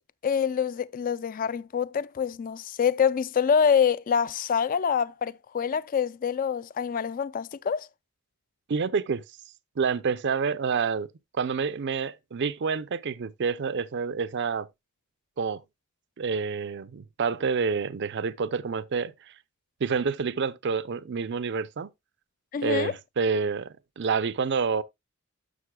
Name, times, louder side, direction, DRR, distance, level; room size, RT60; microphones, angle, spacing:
voice 1, 0.2-7.9 22.5-22.9, left 7 dB, 40° left, 0.3 m, -26 dB
voice 2, 8.7-9.2 9.8-11.1 11.4-14.7 15.4-15.6 16.2-19.3 19.8-21.9 22.6-24.8, right 5 dB, 55° right, 0.5 m, -28 dB
11.5 x 6.6 x 2.2 m
head